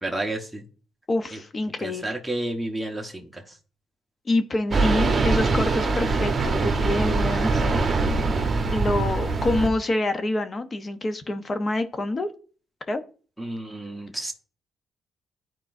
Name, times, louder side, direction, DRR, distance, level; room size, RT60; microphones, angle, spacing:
voice 1, 0.0-0.6 1.3-1.4 1.8-3.4 13.4-14.3, right 1 dB, ahead, -1 dB, 1.2 m, -31 dB
voice 2, 1.1-2.0 4.3-7.6 8.7-12.3 12.9-13.0, left 2 dB, 30° left, 9 dB, 0.8 m, -26 dB
sound 1, 4.7-9.7, right 3 dB, 35° right, 1.1 m, -23 dB
11.5 x 4.5 x 2.6 m, 0.39 s
cardioid pair, 90°, 0 cm